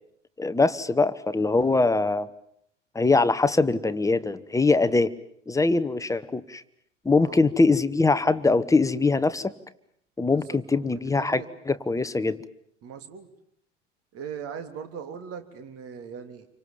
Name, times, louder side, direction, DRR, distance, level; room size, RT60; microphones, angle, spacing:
voice 1, 0.4-2.3 2.9-5.1 5.5-6.6 7.0-9.5 10.2-12.4, left 3 dB, 10° left, 13 dB, 1.2 m, -22 dB
voice 2, 10.3-11.5 12.8-13.3 14.1-16.5, right 7 dB, 40° right, 9 dB, 3.2 m, -40 dB
29.0 x 25.0 x 7.2 m, 0.72 s
figure-of-eight pair, 80°, 37 cm